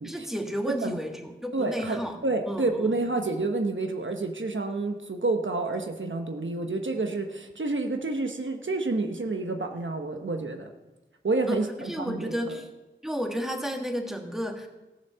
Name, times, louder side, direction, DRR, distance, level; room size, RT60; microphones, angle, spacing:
voice 1, 0.0-2.1 2.5-2.9 11.5-12.7 13.0-14.7, equal, ahead, 3 dB, 1.7 m, -32 dB
voice 2, 0.7-1.0 1.5-10.7 11.2-12.5, right 3 dB, 80° right, 5 dB, 1.1 m, -29 dB
14.5 x 7.2 x 6.9 m, 1.1 s
wide cardioid pair, 50°, 20 cm